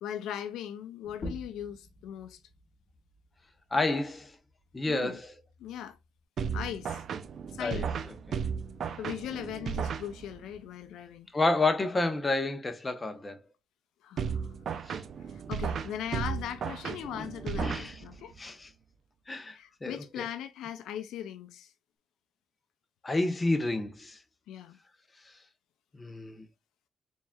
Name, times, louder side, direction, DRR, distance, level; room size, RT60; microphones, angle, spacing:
voice 1, 0.0-2.4 4.9-5.2 5.6-6.0 6.5-7.0 7.5-7.9 9.0-11.3 14.0-14.5 15.3-18.3 19.5-21.7 24.5-24.8, left 10 dB, 90° left, 0.4 m, -39 dB
sound 1, 1.0-6.2, left 1 dB, 45° left, 1.4 m, -48 dB
voice 2, 3.7-4.3 4.7-5.3 7.6-8.4 11.3-13.4 14.9-15.0 17.2-17.3 17.6-18.0 18.4-18.7 19.3-20.3 23.0-24.2 25.9-26.5, left 2 dB, 25° left, 0.9 m, -30 dB
sound 2, 6.4-10.6 14.2-18.4, right 6 dB, 65° right, 0.5 m, -35 dB
4.0 x 3.6 x 2.3 m
cardioid pair, 80°, 0 cm